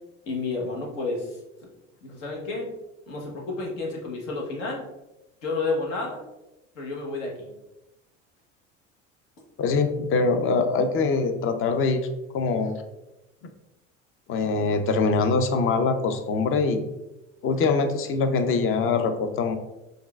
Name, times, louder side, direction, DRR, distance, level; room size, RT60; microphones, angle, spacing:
voice 1, 0.3-1.4 2.0-2.7 3.1-4.8 5.4-6.2 6.7-7.5, left 3 dB, 75° left, -2 dB, 1.2 m, -30 dB
voice 2, 9.6-12.0 12.3-12.7 14.3-16.8 17.4-19.6, left 4 dB, 35° left, 8 dB, 0.5 m, -23 dB
5.4 x 2.5 x 2.3 m, 0.97 s
hypercardioid pair, 70°, 36 cm